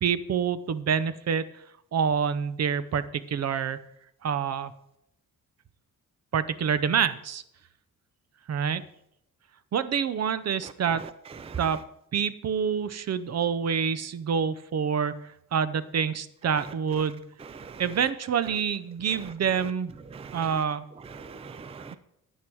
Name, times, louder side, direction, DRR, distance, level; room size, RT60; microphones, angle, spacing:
voice 1, 0.0-1.6 1.9-3.8 4.2-4.7 6.3-7.4 8.5-8.8 9.7-11.0 11.6-11.8 12.1-17.3 17.8-19.9 20.3-20.9, right 7 dB, 50° right, 15 dB, 0.7 m, -27 dB
voice 2, 10.6-11.8 16.4-16.7 17.0-17.1 17.4-18.1 19.2-19.7 20.1-20.6 21.0-22.0, right 5 dB, 20° right, 13 dB, 0.4 m, -41 dB
9.4 x 9.4 x 4.6 m, 0.76 s
cardioid pair, 120°, 33 cm